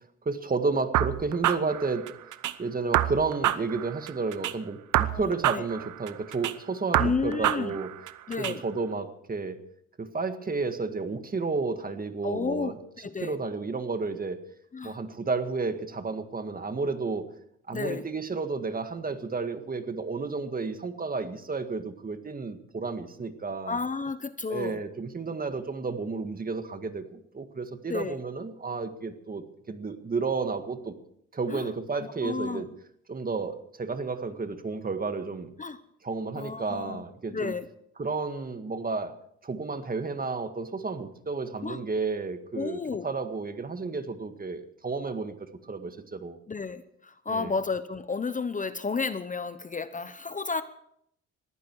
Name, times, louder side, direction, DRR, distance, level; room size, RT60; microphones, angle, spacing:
voice 1, 0.3-2.1 2.6-7.9 8.4-9.6 10.0-12.8 13.2-14.4 14.8-17.3 17.7-23.8 24.5-30.9 31.3-32.7 33.1-35.5 36.0-37.5 38.0-39.1 39.4-45.3 45.7-46.4 47.3-47.5, right 4 dB, 30° right, 8 dB, 1.8 m, -32 dB
sound 1, 0.9-2.5 2.9-4.5 4.9-6.5 6.9-8.5, right 13 dB, 80° right, 1.0 m, -27 dB
voice 2, 5.1-5.7 7.0-7.8 8.3-8.6 12.2-12.7 13.0-13.4 14.7-15.0 17.7-18.0 23.7-24.8 27.9-28.2 31.5-31.7 32.0-32.6 35.6-35.8 36.3-37.0 37.3-37.7 41.6-41.8 42.5-43.1 46.5-50.6, left 4 dB, 25° left, 12 dB, 0.9 m, -32 dB
20.5 x 15.0 x 4.7 m, 0.71 s
cardioid pair, 90°, 30 cm